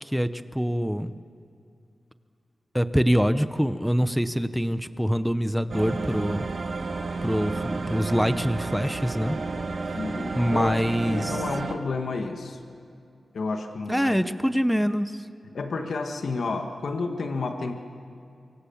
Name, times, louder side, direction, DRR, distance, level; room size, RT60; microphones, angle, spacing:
voice 1, 0.0-1.1 2.7-6.5 7.2-9.4 10.3-11.4 13.9-15.3, equal, ahead, 12 dB, 0.7 m, -25 dB
sound 1, 5.7-11.8, right 3 dB, 55° right, 1.9 m, -31 dB
voice 2, 9.9-12.6 13.3-14.1 15.5-17.7, left 3 dB, 70° left, 4 dB, 1.8 m, -31 dB
25.0 x 24.5 x 7.2 m, 2.5 s
wide cardioid pair, 100°, 0 cm